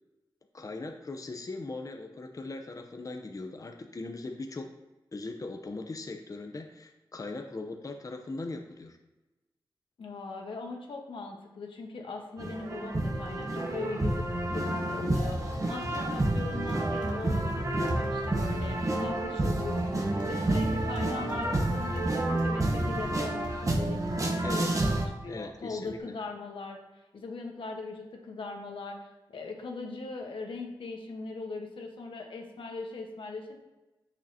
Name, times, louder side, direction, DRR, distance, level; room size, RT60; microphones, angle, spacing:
voice 1, 0.5-4.7 5.1-9.0 24.4-24.9 25.3-26.1, left 3 dB, 40° left, 4 dB, 0.7 m, -40 dB
voice 2, 10.0-20.0 20.3-26.8 27.1-29.0 29.3-33.6, left 3 dB, 85° left, 2 dB, 1.2 m, -40 dB
sound 1, 12.4-25.1, right 1 dB, 40° right, 1.1 m, -29 dB
Typing, 13.6-26.0, equal, 70° right, 2.7 m, -40 dB
8.4 x 6.5 x 2.8 m, 1.1 s
cardioid pair, 60°, 9 cm